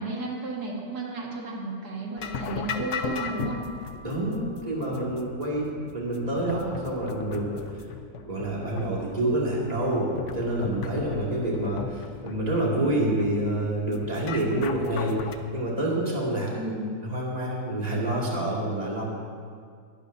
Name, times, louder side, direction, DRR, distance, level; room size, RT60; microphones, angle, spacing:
voice 1, 0.0-3.6 16.6-17.0, right 3 dB, 80° right, -2 dB, 2.3 m, -33 dB
sound 1, 2.2-15.3, left 6 dB, 60° left, 0.9 m, -37 dB
Piano, 2.9-5.1, equal, 20° left, 3.1 m, -46 dB
voice 2, 4.0-7.6 8.3-15.2 15.5-16.5 17.0-19.0, right 1 dB, 25° right, -5 dB, 2.4 m, -27 dB
21.0 x 12.0 x 2.7 m, 2.1 s
omnidirectional pair, 1.6 m